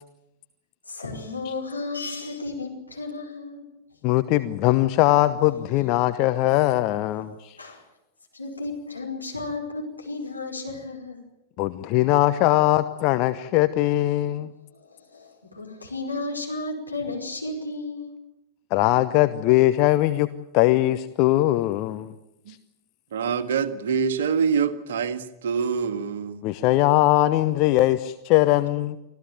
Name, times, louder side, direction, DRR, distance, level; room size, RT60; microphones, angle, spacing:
voice 1, 0.9-3.7 7.6-7.8 8.3-11.2 14.7-18.1, left 3 dB, 85° left, 5.1 m, -33 dB
voice 2, 4.0-7.5 11.6-14.5 18.7-20.3 20.5-22.1 26.4-29.0, left 16 dB, 40° left, 0.9 m, -21 dB
voice 3, 23.1-26.4, right 6 dB, 60° right, 1.7 m, -25 dB
25.5 x 15.5 x 9.2 m
figure-of-eight pair, 90°, 0 cm